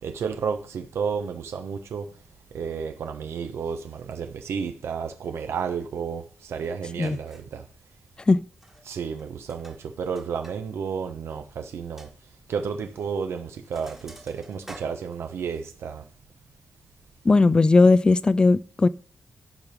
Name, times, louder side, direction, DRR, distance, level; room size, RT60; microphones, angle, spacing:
voice 1, 0.0-2.1 2.5-7.6 8.8-12.1 12.5-16.0, right 6 dB, 80° right, 1.1 m, -32 dB
Sink (filling or washing), 6.6-6.7 7.0-7.6 8.5-8.9 9.2-10.6 10.9-11.0 11.4-11.5 12.0-12.1 13.0-13.2 13.5-15.6, right 1 dB, 10° right, 1.4 m, -48 dB
voice 2, 17.3-18.9, left 3 dB, 20° left, 0.4 m, -17 dB
12.0 x 5.3 x 6.0 m
wide cardioid pair, 170°, 4 cm